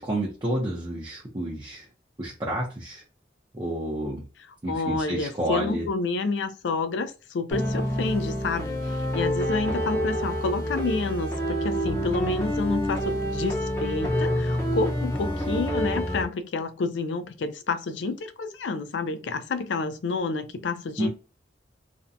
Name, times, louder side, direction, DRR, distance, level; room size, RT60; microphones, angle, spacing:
voice 1, 0.0-1.9 2.2-3.0 3.5-4.2 4.6-5.9 21.0-21.1, right 1 dB, 25° right, 0.6 m, -30 dB
voice 2, 4.7-21.1, left 3 dB, 80° left, 0.4 m, -29 dB
sound 1, 7.5-16.3, equal, 15° left, 0.7 m, -27 dB
2.5 x 2.2 x 2.5 m
head